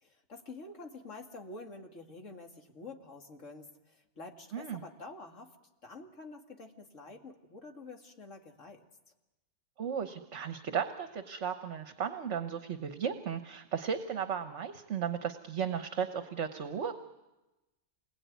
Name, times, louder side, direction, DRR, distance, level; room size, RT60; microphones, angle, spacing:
voice 1, 0.0-5.6 5.8-8.8, left 3 dB, 70° left, 2 dB, 2.5 m, -48 dB
voice 2, 9.8-17.0, right 7 dB, 60° right, 8 dB, 1.4 m, -35 dB
28.0 x 21.5 x 9.4 m, 1.1 s
omnidirectional pair, 1.4 m